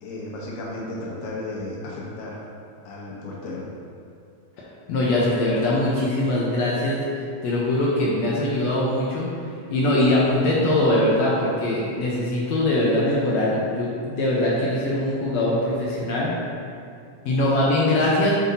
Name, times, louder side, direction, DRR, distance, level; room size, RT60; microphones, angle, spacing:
voice 1, 0.0-2.4 2.9-3.6, left 2 dB, 90° left, -5 dB, 2.9 m, -34 dB
voice 2, 4.9-9.3 9.7-16.3 17.2-18.3, left 1 dB, 70° left, -6 dB, 1.8 m, -22 dB
7.5 x 6.1 x 2.8 m, 2.4 s
omnidirectional pair, 3.8 m